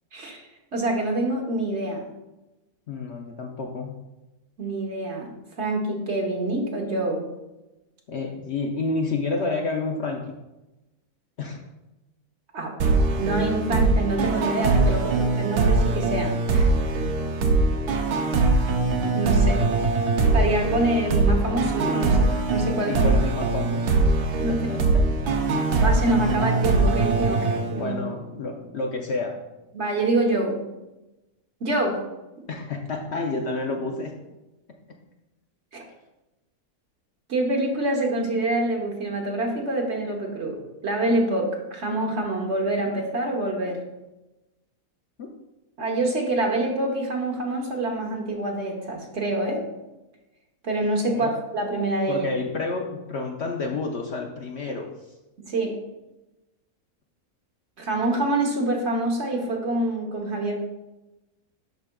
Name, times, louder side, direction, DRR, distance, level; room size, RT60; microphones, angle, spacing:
voice 1, 0.1-0.4 0.7-2.0 4.6-5.3 5.6-7.3 12.5-12.7 13.2-16.7 19.1-19.7 20.3-23.0 24.4-24.6 25.8-28.0 29.7-30.6 31.6-32.0 35.7-35.8 37.3-43.8 45.8-49.6 50.6-52.3 55.4-55.8 57.8-60.6, right 2 dB, 50° right, 1 dB, 1.3 m, -26 dB
voice 2, 2.9-4.0 8.1-10.3 11.4-11.6 22.9-23.9 24.5-25.3 27.3-27.5 27.8-29.4 32.5-34.2 45.2-45.3 51.1-51.3 52.1-54.9, left 3 dB, 55° left, 1 dB, 0.8 m, -30 dB
sound 1, 12.8-28.3, right 3 dB, 90° right, 1.3 m, -22 dB
11.5 x 5.0 x 2.3 m, 1.0 s
omnidirectional pair, 1.6 m